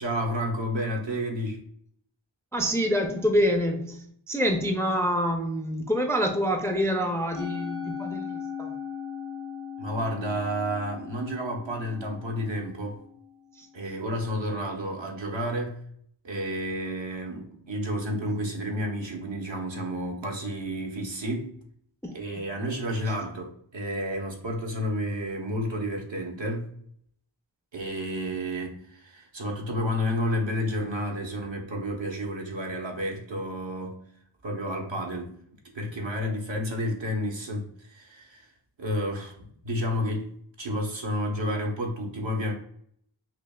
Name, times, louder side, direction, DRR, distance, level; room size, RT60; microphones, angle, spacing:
voice 1, 0.0-1.6 9.8-13.0 13.7-15.8 16.2-21.6 22.1-26.7 27.7-34.0 34.4-35.4 35.7-38.5 38.8-40.3 40.6-42.5, equal, 65° right, 0 dB, 1.0 m, -31 dB
voice 2, 2.5-8.7 13.6-13.7 22.0-22.2, equal, 5° left, 4 dB, 0.4 m, -26 dB
Musical instrument, 7.3-13.7, left 7 dB, 80° left, 1.0 m, -38 dB
5.6 x 2.3 x 2.2 m, 0.63 s
wide cardioid pair, 45°, 48 cm